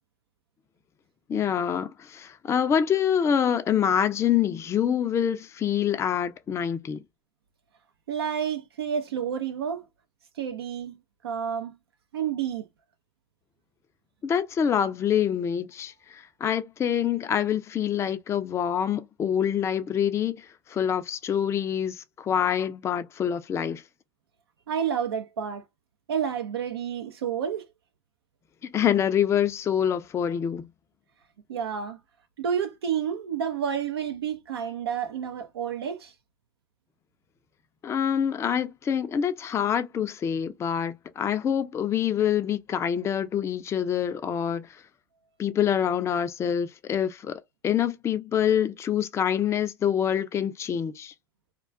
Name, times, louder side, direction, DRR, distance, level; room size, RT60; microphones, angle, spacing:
voice 1, 1.3-7.0 14.2-23.8 28.7-30.7 37.8-44.7 45.4-51.1, left 8 dB, 20° left, 0.3 m, -26 dB
voice 2, 8.1-9.8 10.4-11.8 12.1-12.7 24.7-25.6 26.1-27.7 31.5-32.0 32.4-36.1, right 8 dB, 90° right, 0.5 m, -30 dB
2.2 x 2.2 x 2.4 m
hypercardioid pair, 100°, 13 cm